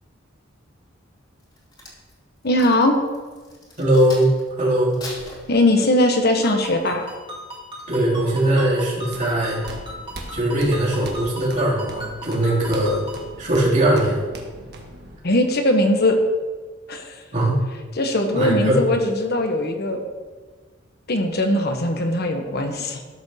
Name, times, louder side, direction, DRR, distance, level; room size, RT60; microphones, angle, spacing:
Crack, 1.4-4.5 4.9-6.1 6.6-6.9, left 2 dB, 20° left, 2.8 m, -41 dB
voice 1, 2.4-3.0 5.5-7.0 15.2-16.2 16.9-17.2 17.9-20.0 21.1-23.0, left 1 dB, 55° left, 5 dB, 1.2 m, -20 dB
voice 2, 3.8-5.0 7.9-9.6 10.3-13.0 13.4-14.2 17.3-17.6 18.3-18.8, right 1 dB, 40° right, -5 dB, 3.0 m, -20 dB
Ringtone, 6.4-13.3, left 1 dB, 25° right, 2.5 m, -38 dB
sound 1, 8.9-15.2, right 1 dB, 55° right, 1.5 m, -40 dB
12.5 x 5.2 x 6.4 m, 1.4 s
head